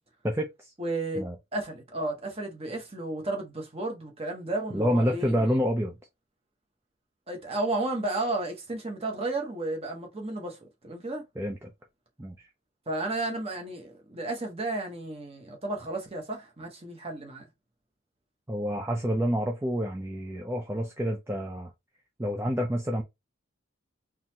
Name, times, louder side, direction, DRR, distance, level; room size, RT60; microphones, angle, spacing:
voice 1, 0.2-0.7 1.2-1.4 4.7-6.0 11.4-11.7 12.2-12.5 18.5-21.7 22.2-23.0, equal, 10° right, 0.5 m, -28 dB
voice 2, 0.8-1.2 1.5-5.5 7.3-11.2 12.9-17.4, right 2 dB, 30° right, 1.1 m, -33 dB
4.0 x 2.9 x 2.8 m
head